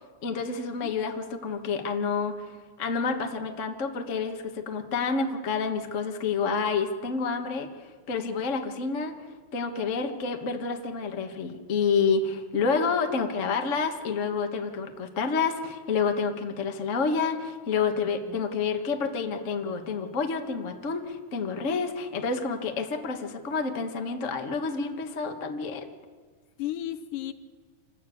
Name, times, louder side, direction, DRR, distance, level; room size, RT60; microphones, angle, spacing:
voice 1, 0.2-9.1 9.5-25.9, left 5 dB, 45° left, 5 dB, 0.9 m, -29 dB
voice 2, 17.9-18.5 26.6-27.3, left 12 dB, 85° left, 12 dB, 2.6 m, -35 dB
26.5 x 13.5 x 8.5 m, 1.5 s
omnidirectional pair, 3.6 m